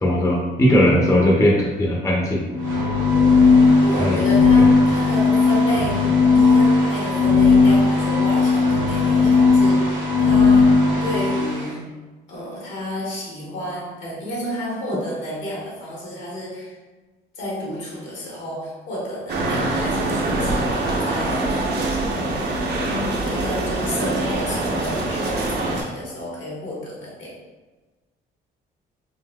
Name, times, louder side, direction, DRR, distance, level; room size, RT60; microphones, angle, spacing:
voice 1, 0.0-2.4 4.0-4.2, left 1 dB, 15° left, -2 dB, 0.5 m, -18 dB
sound 1, 2.5-11.6, left 4 dB, 80° right, 1.2 m, -16 dB
voice 2, 3.8-11.9 12.3-16.8 17.3-21.7 22.1-22.4 23.2-27.4, equal, 75° left, -5 dB, 1.3 m, -31 dB
sound 2, 19.3-25.8, right 2 dB, 55° right, 0.6 m, -24 dB
3.7 x 2.5 x 2.2 m, 1.2 s
cardioid pair, 90°, 20 cm